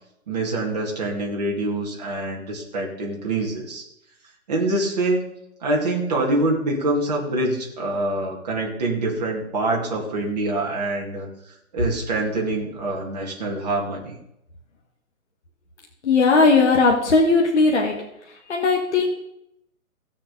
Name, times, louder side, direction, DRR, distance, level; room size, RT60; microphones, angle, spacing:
voice 1, 0.3-3.8 4.5-5.2 5.6-11.3 11.7-14.2, right 2 dB, 30° right, -2 dB, 2.0 m, -25 dB
voice 2, 16.0-18.0 18.5-19.1, left 3 dB, 50° left, 0 dB, 1.6 m, -17 dB
17.0 x 6.6 x 3.9 m, 0.81 s
hypercardioid pair, 175°, 43 cm